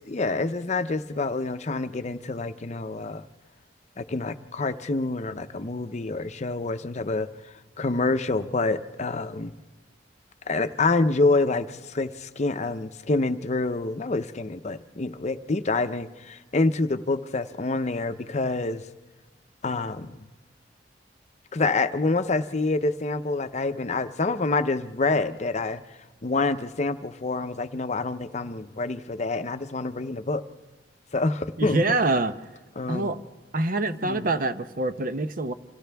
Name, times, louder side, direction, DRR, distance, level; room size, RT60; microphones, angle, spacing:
voice 1, 0.1-3.2 4.0-7.3 7.8-9.5 10.5-18.8 19.6-20.2 21.5-25.8 26.2-30.4 31.1-32.0 32.8-33.1 34.0-34.3, left 3 dB, 40° left, 10 dB, 0.7 m, -27 dB
voice 2, 31.6-32.3 32.9-33.2 33.5-35.5, right 2 dB, 50° right, 11 dB, 0.8 m, -25 dB
29.0 x 26.5 x 3.5 m, 1.3 s
head